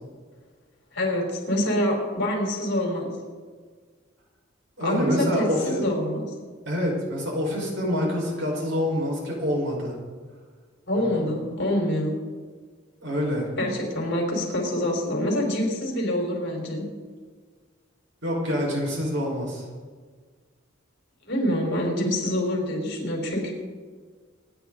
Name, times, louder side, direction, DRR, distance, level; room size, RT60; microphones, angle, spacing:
voice 1, 0.9-3.1 4.8-6.3 10.9-12.1 13.6-16.8 21.3-23.5, left 1 dB, 60° left, 0 dB, 4.8 m, -26 dB
voice 2, 4.8-5.8 6.7-9.9 10.9-11.2 13.0-13.5 18.2-19.6, equal, 65° right, -2 dB, 5.4 m, -26 dB
26.5 x 11.0 x 4.1 m, 1.5 s
head